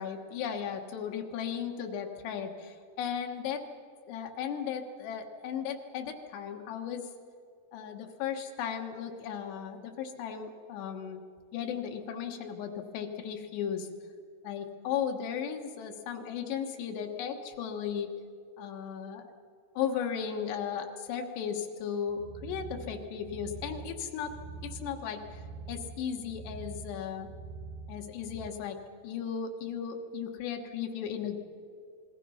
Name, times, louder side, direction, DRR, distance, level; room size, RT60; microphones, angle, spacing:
voice 1, 0.0-3.7 4.1-7.1 7.7-11.2 11.5-13.9 14.4-18.1 18.6-19.2 19.8-24.4 24.6-25.4 25.7-27.3 27.9-28.8 29.0-31.4, left 8 dB, 85° left, 4 dB, 3.6 m, -36 dB
sound 1, 22.1-28.5, right 4 dB, 85° right, 2.9 m, -45 dB
27.5 x 20.5 x 5.7 m, 2.2 s
omnidirectional pair, 4.8 m